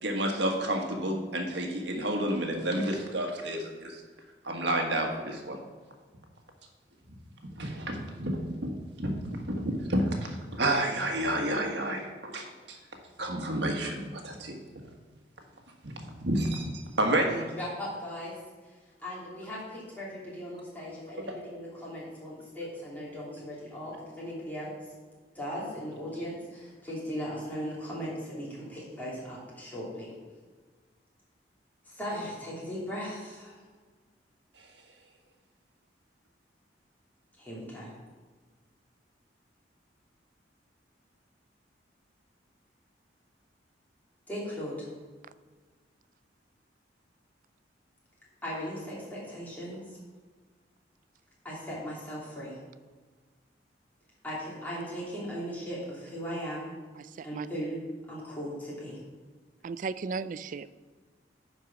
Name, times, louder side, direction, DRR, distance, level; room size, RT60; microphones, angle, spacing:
voice 1, 0.0-4.0 4.4-5.6 7.6-12.8 13.2-14.6 15.8-17.5, right 1 dB, 70° right, 2 dB, 1.5 m, -30 dB
voice 2, 17.6-18.4 19.0-24.7 25.3-30.1 31.9-33.6 37.4-37.9 44.3-44.9 48.4-49.8 51.4-52.6 54.2-56.7 57.2-59.0, equal, 10° left, -7 dB, 3.0 m, -38 dB
voice 3, 57.0-57.5 59.6-60.8, right 4 dB, 45° right, 15 dB, 0.3 m, -36 dB
10.0 x 4.8 x 6.0 m, 1.4 s
head